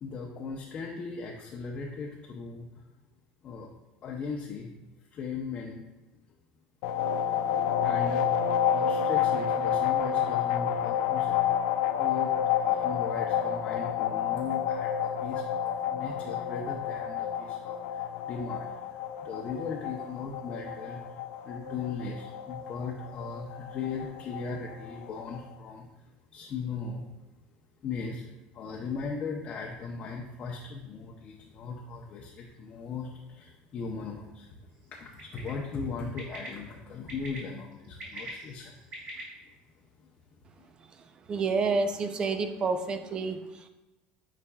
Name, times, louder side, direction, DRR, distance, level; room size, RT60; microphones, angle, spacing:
voice 1, 0.0-2.8 3.4-3.7 4.0-4.7 5.1-5.8 7.8-8.3 8.7-11.4 11.9-18.7 19.2-21.0 21.4-25.9 26.3-27.0 27.8-28.3 28.5-34.5 34.9-38.7 39.1-39.2 40.6-40.7, left 5 dB, 35° left, -1 dB, 0.7 m, -38 dB
sound 1, 6.8-25.4, left 9 dB, 75° left, 0.4 m, -29 dB
Bird, 35.2-35.5 36.2-36.5 37.1-37.4 37.8-39.2, right 2 dB, 50° right, 2.1 m, -42 dB
voice 2, 41.3-43.7, right 4 dB, 25° right, 8 dB, 0.5 m, -29 dB
8.3 x 5.1 x 2.3 m, 1.0 s
cardioid pair, 145°, 3 cm